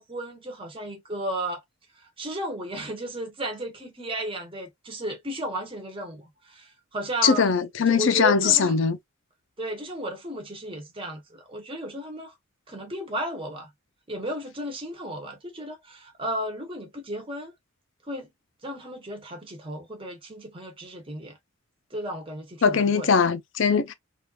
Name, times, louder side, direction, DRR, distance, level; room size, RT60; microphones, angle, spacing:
voice 1, 0.0-1.6 1.9-8.8 9.6-12.4 12.7-13.7 14.1-17.5 18.0-18.3 18.6-21.4 21.9-23.1, right 1 dB, 25° right, 1.1 m, -34 dB
voice 2, 7.2-9.0 22.6-23.9, left 6 dB, 60° left, 0.5 m, -21 dB
3.5 x 2.5 x 2.4 m
head